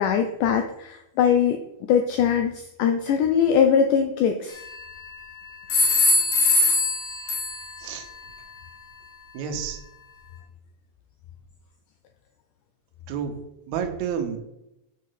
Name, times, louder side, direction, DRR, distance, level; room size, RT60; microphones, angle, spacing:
voice 1, 0.0-1.6 1.9-4.6, left 7 dB, 80° left, 5 dB, 1.9 m, -21 dB
UK Phone ringing, 4.5-5.2 5.7-7.9, left 2 dB, 60° left, 3.1 m, -22 dB
voice 2, 9.3-9.8 13.1-13.4 13.7-14.4, right 7 dB, 70° right, 5 dB, 2.0 m, -29 dB
6.4 x 5.9 x 5.7 m, 0.87 s
omnidirectional pair, 4.1 m